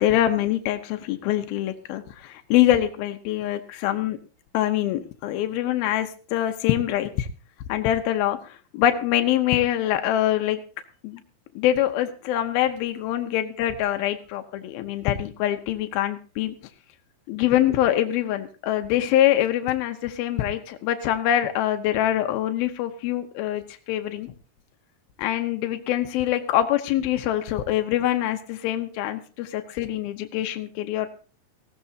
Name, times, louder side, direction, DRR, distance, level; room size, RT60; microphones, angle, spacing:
voice 1, 0.0-4.2 4.5-7.3 7.7-10.6 11.0-11.2 11.6-16.5 17.3-24.3 25.2-31.1, left 12 dB, 90° left, 7 dB, 2.7 m, -24 dB
19.0 x 16.0 x 2.7 m, 0.37 s
omnidirectional pair, 4.2 m